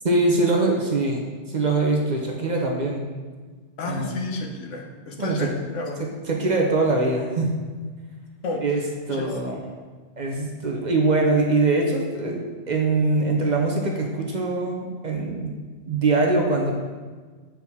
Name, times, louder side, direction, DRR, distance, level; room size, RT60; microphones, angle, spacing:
voice 1, 0.0-3.0 3.8-4.2 5.2-5.5 6.0-7.5 8.6-9.6 10.2-12.4 12.7-15.5 15.9-16.7, right 3 dB, 45° right, 0 dB, 0.8 m, -23 dB
voice 2, 3.8-6.1 8.4-8.6 9.1-9.3, left 2 dB, 85° left, 2 dB, 1.2 m, -31 dB
7.4 x 4.3 x 3.6 m, 1.5 s
omnidirectional pair, 1.2 m